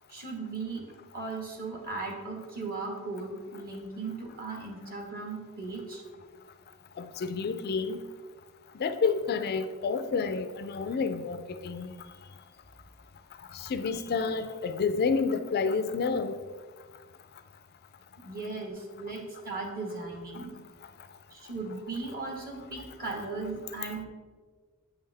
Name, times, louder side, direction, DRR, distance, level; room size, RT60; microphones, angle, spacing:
voice 1, 0.1-0.8 1.1-6.1 18.2-20.5 21.3-24.1, right 3 dB, 45° right, 1.4 m, -37 dB
voice 2, 7.0-8.0 8.8-11.9 13.5-16.4, left 5 dB, 45° left, 0.4 m, -29 dB
8.1 x 5.5 x 3.4 m
head